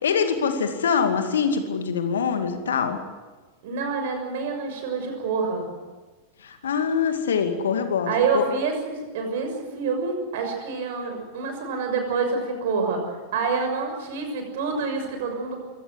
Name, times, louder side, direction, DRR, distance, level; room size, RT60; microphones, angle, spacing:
voice 1, 0.0-3.0 6.4-8.4, left 6 dB, 65° left, 7 dB, 2.4 m, -24 dB
voice 2, 3.6-5.7 8.1-13.0 13.3-15.6, right 4 dB, 55° right, 4 dB, 6.6 m, -27 dB
24.5 x 17.5 x 8.0 m, 1.3 s
figure-of-eight pair, 90°, 0 cm